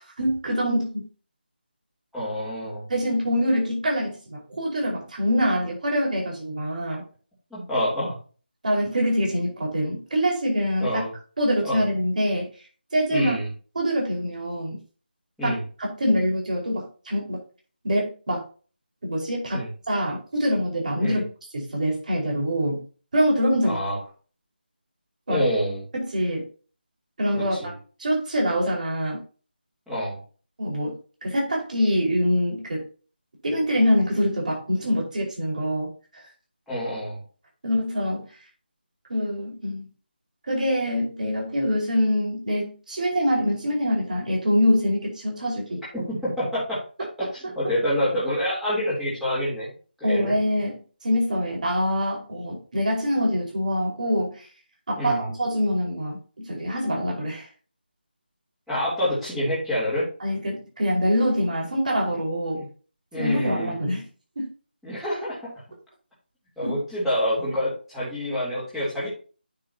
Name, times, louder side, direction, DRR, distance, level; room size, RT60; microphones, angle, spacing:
voice 1, 0.2-1.0 2.9-7.0 8.6-11.0 11.4-12.5 12.9-13.3 13.7-14.8 15.4-15.6 16.0-17.4 17.8-18.4 19.0-19.6 19.9-21.2 21.5-22.8 23.1-23.8 25.3-25.4 25.9-26.4 27.2-27.6 28.0-29.2 30.6-32.8 33.4-35.9 37.6-38.2 39.1-39.9 40.5-45.8 50.0-50.8 51.0-54.5 54.9-57.5 60.2-62.6 63.2-64.1 64.3-64.5 66.6-66.8, equal, 50° right, -1 dB, 5.0 m, -24 dB
voice 2, 2.1-2.9 7.5-8.2 10.8-11.1 11.6-11.8 13.1-13.5 15.4-15.6 19.5-19.7 21.0-21.2 23.6-24.0 25.3-25.8 27.3-27.7 29.9-30.2 36.7-37.2 45.9-46.8 47.2-49.7 50.0-50.4 55.0-55.2 58.7-60.1 62.5-62.7 63.1-63.8 64.8-65.5 66.6-69.1, equal, ahead, -11 dB, 3.4 m, -27 dB
9.3 x 7.3 x 2.9 m, 0.37 s
figure-of-eight pair, 160°, 6 cm